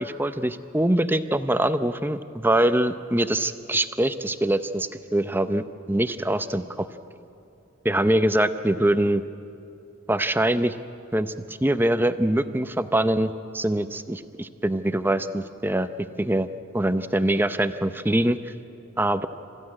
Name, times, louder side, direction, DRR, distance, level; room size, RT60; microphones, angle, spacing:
voice 1, 0.0-6.9 7.8-9.2 10.1-10.8 11.1-11.3 11.6-15.9 16.2-16.5 16.7-18.5 19.0-19.3, right 1 dB, 10° right, 11 dB, 0.6 m, -23 dB
27.0 x 15.5 x 9.7 m, 2.6 s
head